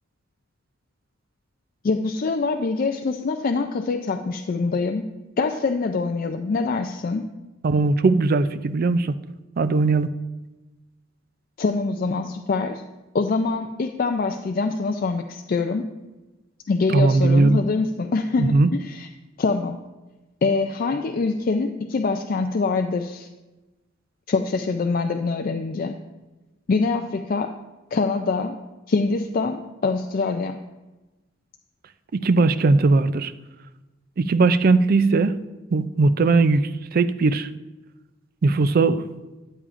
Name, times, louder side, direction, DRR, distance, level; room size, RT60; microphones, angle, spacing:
voice 1, 1.8-5.1 5.4-7.3 11.6-12.8 13.1-15.9 16.7-19.1 19.4-19.8 20.4-23.3 24.3-25.9 26.7-27.5 27.9-28.6 28.9-30.6, left 4 dB, 45° left, 6 dB, 0.4 m, -24 dB
voice 2, 7.6-9.2 9.6-10.1 16.9-17.6 18.4-18.7 32.1-33.3 34.2-35.4 35.7-37.5 38.4-39.0, right 3 dB, 45° right, 13 dB, 0.4 m, -19 dB
13.0 x 8.7 x 2.5 m, 1.1 s
head